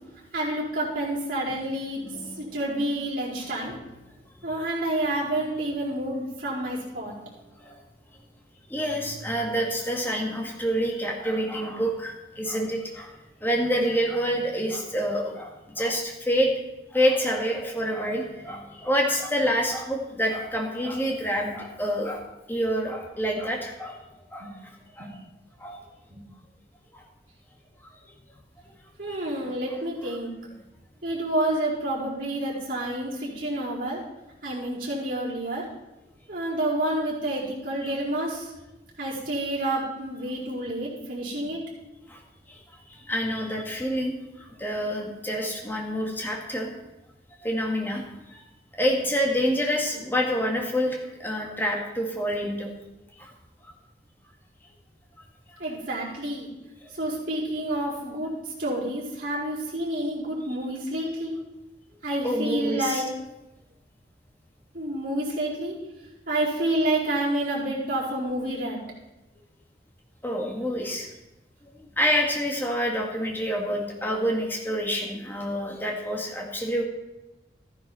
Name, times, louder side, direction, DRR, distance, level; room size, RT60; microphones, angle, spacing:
voice 1, 0.3-3.7 4.4-7.2 24.4-24.5 25.0-25.1 26.1-26.2 29.0-30.3 31.0-34.0 34.4-35.6 36.3-38.5 39.0-41.6 55.6-56.5 56.9-61.3 62.0-63.0 64.7-65.8 66.3-68.8, right 1 dB, 45° right, -8 dB, 4.5 m, -29 dB
voice 2, 2.0-2.4 7.6-7.8 8.7-13.1 13.4-16.6 16.9-24.0 24.3-24.5 24.9-25.1 25.6-25.8 26.9-27.0 29.0-29.2 37.8-37.9 42.1-42.2 42.5-42.6 42.9-46.7 47.4-48.4 48.7-52.7 53.2-53.3 55.5-55.6 62.2-63.0 70.2-71.1 71.7-76.8, equal, 10° left, 0 dB, 1.8 m, -27 dB
14.5 x 10.0 x 4.3 m, 1.0 s
head